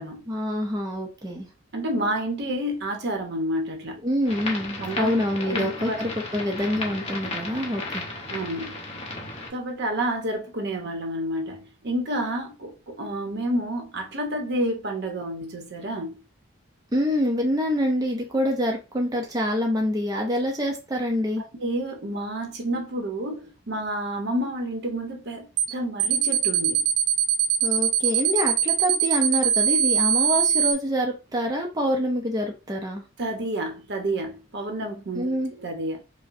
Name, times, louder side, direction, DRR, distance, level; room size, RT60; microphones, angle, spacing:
voice 1, 0.3-1.5 4.0-8.0 16.9-21.4 27.6-33.0 35.1-35.5, equal, 20° right, 0.6 m, -26 dB
voice 2, 1.7-4.0 4.8-5.1 5.4-6.0 8.3-8.8 9.5-16.2 21.6-26.8 33.2-36.0, right 1 dB, 60° right, 0.9 m, -29 dB
sound 1, 4.3-9.5, left 2 dB, 35° left, 1.0 m, -34 dB
sound 2, 25.6-25.7 26.0-30.7, right 9 dB, 80° right, 0.4 m, -21 dB
4.8 x 2.1 x 2.6 m
head